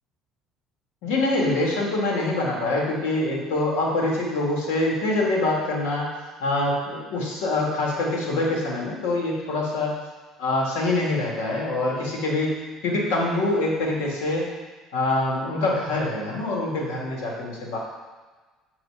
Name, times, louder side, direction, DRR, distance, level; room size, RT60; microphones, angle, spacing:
voice 1, 1.0-6.1 6.4-9.9 10.4-12.5 12.8-14.5 14.9-17.8, left 2 dB, 85° left, -3 dB, 2.3 m, -25 dB
8.7 x 4.7 x 5.0 m, 1.3 s
cardioid pair, 110°, 0 cm